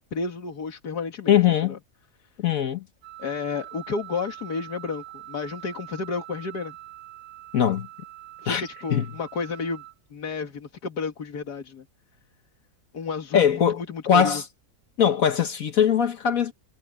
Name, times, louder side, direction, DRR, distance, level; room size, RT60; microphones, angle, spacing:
voice 1, 0.0-1.4 1.6-1.8 3.2-6.8 8.4-9.8 10.1-11.9 12.9-14.4, left 5 dB, 85° left, 2.3 m, -32 dB
voice 2, 1.3-1.8 2.4-2.8 7.5-7.9 8.5-8.6 8.9-9.1 13.3-13.8 14.1-14.4 15.0-16.5, left 8 dB, 65° left, 1.4 m, -21 dB
Wind instrument woodwind instrument, 3.0-9.9, right 16 dB, 70° right, 1.8 m, -44 dB
omnidirectional pair, 1.6 m